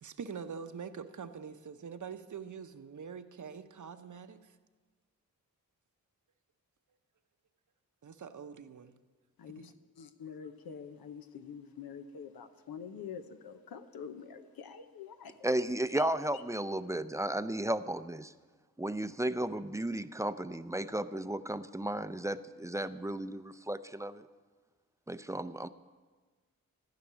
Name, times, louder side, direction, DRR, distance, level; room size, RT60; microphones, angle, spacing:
voice 1, 0.0-4.5 8.0-8.9, right 6 dB, 55° right, 9 dB, 0.9 m, -44 dB
voice 2, 10.0-15.5 15.9-16.0 16.3-16.4, left 7 dB, 85° left, 9 dB, 0.9 m, -46 dB
voice 3, 15.4-18.3 18.8-24.3 25.1-25.7, right 1 dB, 10° right, 12 dB, 0.5 m, -34 dB
14.5 x 5.9 x 9.9 m, 1.4 s
cardioid pair, 55°, 35 cm